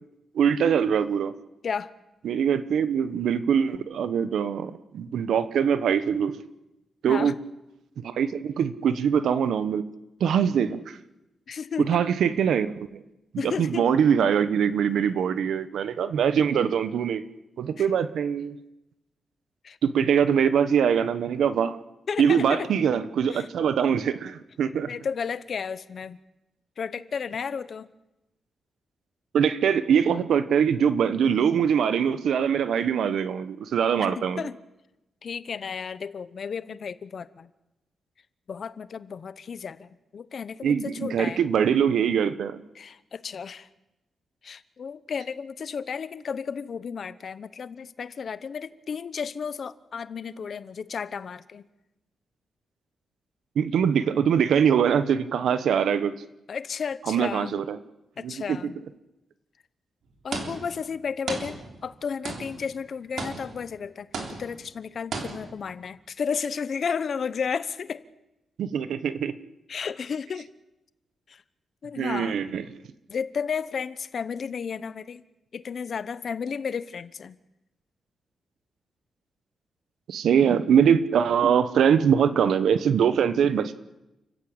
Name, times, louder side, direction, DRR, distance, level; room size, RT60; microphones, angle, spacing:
voice 1, 0.3-1.3 2.2-6.4 7.0-7.3 8.0-9.8 10.2-11.0 11.8-13.0 13.4-17.2 17.6-18.6 19.8-21.8 22.2-24.9 29.3-34.4 40.6-42.6 53.5-56.1 57.1-57.8 58.2-58.6 68.6-69.3 72.0-72.6 80.1-83.7, right 7 dB, 80° right, 12 dB, 1.2 m, -23 dB
voice 2, 11.5-12.0 13.4-13.9 17.8-17.9 19.6-19.8 22.1-22.7 23.3-23.5 24.8-26.2 26.8-27.9 34.0-34.6 35.2-37.5 38.5-41.4 42.8-43.7 44.4-51.6 56.5-57.6 58.2-58.8 60.2-64.1 64.4-68.0 69.7-70.5 71.3-71.4 71.8-72.4 73.1-75.2 75.5-77.4, left 6 dB, 45° left, 15 dB, 0.9 m, -33 dB
sound 1, 60.3-60.9 61.3-62.0 62.2-62.7 63.2-63.7 64.1-64.7 65.1-65.7, right 4 dB, 60° right, 3.6 m, -35 dB
29.5 x 15.0 x 8.8 m, 0.98 s
wide cardioid pair, 180°, 0 cm